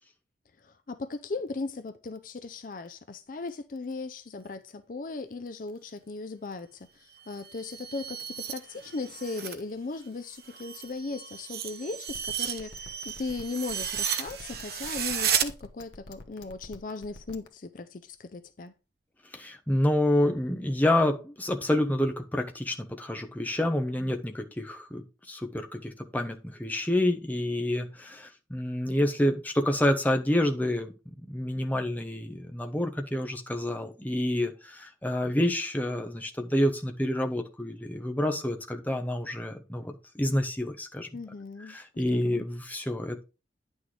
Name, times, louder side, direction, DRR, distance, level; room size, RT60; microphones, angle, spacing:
voice 1, 0.6-18.7 41.1-42.5, left 3 dB, 45° left, 0.5 m, -37 dB
sound 1, 7.2-9.6 10.0-15.5, right 9 dB, 55° right, 0.8 m, -33 dB
sound 2, 12.1-17.5, left 2 dB, 85° left, 1.1 m, -46 dB
voice 2, 19.3-30.9 31.3-41.1 41.7-43.2, left 1 dB, 10° left, 0.9 m, -28 dB
9.5 x 6.3 x 3.3 m
head